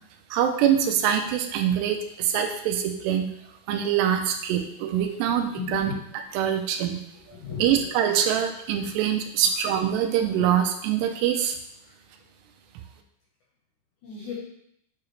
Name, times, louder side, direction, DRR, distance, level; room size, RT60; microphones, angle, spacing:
voice 1, 0.3-3.3 3.7-5.9 6.3-7.0 7.6-11.6, right 9 dB, 85° right, 5 dB, 2.8 m, -24 dB
voice 2, 5.3-6.0 7.1-7.9 8.8-8.9 9.4-9.5 11.8-11.9 14.0-14.3, left 6 dB, 70° left, -3 dB, 2.0 m, -37 dB
8.0 x 4.8 x 3.2 m, 0.75 s
omnidirectional pair, 4.8 m